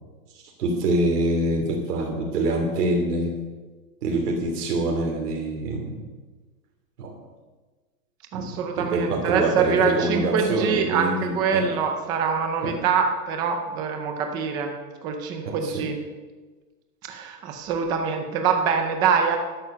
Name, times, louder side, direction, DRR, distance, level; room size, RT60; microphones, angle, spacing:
voice 1, 0.6-3.4 4.0-6.0 7.0-7.2 8.3-11.8 12.6-12.8 15.4-15.9, right 2 dB, 75° right, 0 dB, 3.2 m, -25 dB
voice 2, 8.3-14.7 15.0-16.0 17.0-19.4, right 6 dB, 10° right, 4 dB, 0.4 m, -24 dB
12.0 x 11.0 x 6.7 m, 1.3 s
supercardioid pair, 165°, 46 cm